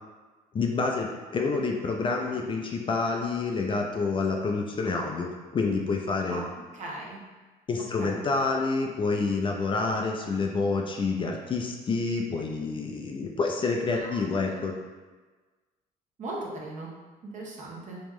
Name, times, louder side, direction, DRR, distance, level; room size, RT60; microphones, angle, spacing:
voice 1, 0.5-6.4 7.7-14.7, left 4 dB, 30° left, 1 dB, 0.4 m, -28 dB
voice 2, 6.7-7.2 8.0-8.1 13.9-14.5 16.2-16.9 17.3-18.0, right 2 dB, 45° right, -2 dB, 0.9 m, -38 dB
3.1 x 3.0 x 3.6 m, 1.3 s
cardioid pair, 110°, 17 cm